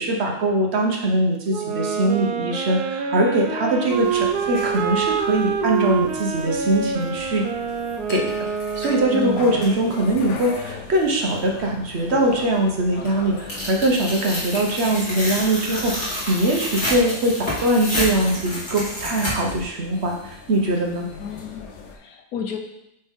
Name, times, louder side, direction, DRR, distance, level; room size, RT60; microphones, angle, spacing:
voice 1, 0.0-7.4 8.1-8.5 8.8-21.1, right 1 dB, 50° right, 1 dB, 0.9 m, -22 dB
Wind instrument woodwind instrument, 1.5-9.8, right 6 dB, 75° right, 1.1 m, -26 dB
sound 1, 3.9-22.0, left 5 dB, 85° left, 1.4 m, -40 dB
voice 2, 9.1-9.7 21.2-22.6, left 5 dB, 70° left, 4 dB, 1.1 m, -32 dB
Tearing, 13.5-19.6, equal, 30° left, 2.1 m, -29 dB
8.4 x 3.4 x 3.6 m, 0.82 s
omnidirectional pair, 1.7 m